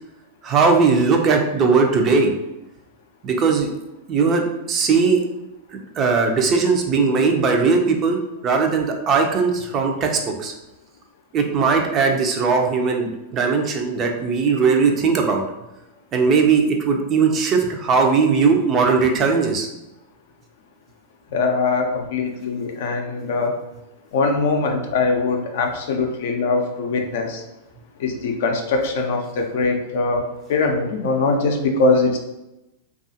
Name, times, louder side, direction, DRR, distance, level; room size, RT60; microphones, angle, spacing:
voice 1, 0.4-2.3 3.2-3.7 4.1-5.2 6.0-8.2 8.4-10.5 11.3-15.4 16.1-19.7, right 5 dB, 35° right, 3 dB, 0.4 m, -19 dB
voice 2, 21.3-23.5 24.1-27.4 28.0-30.2 30.5-32.2, left 3 dB, 60° left, 3 dB, 0.4 m, -21 dB
2.3 x 2.3 x 2.7 m, 0.94 s
figure-of-eight pair, 95°, 0 cm